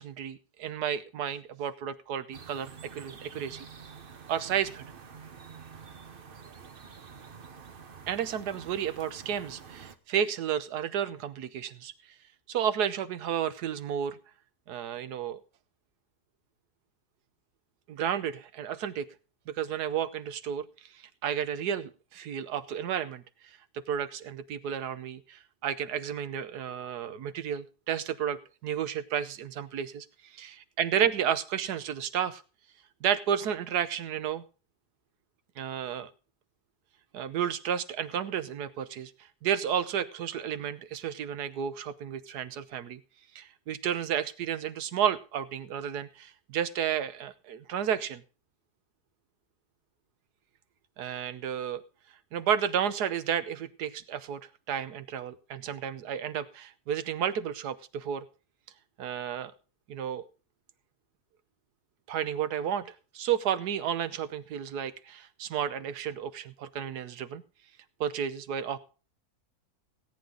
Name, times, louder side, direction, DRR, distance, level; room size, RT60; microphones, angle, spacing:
voice 1, 0.0-3.7 4.3-4.8 8.1-11.9 12.5-14.2 14.7-15.4 17.9-19.1 19.5-20.7 20.9-23.2 23.7-32.4 33.0-34.4 35.6-36.1 37.1-39.1 39.4-43.0 43.3-48.2 51.0-51.8 52.3-54.4 54.7-58.2 59.0-59.5 59.9-60.3 62.1-67.4 68.0-68.8, right 9 dB, 80° right, 12 dB, 1.4 m, -32 dB
sound 1, 2.3-10.0, right 6 dB, 40° right, 1.0 m, -48 dB
16.5 x 9.7 x 3.8 m, 0.36 s
omnidirectional pair, 1.7 m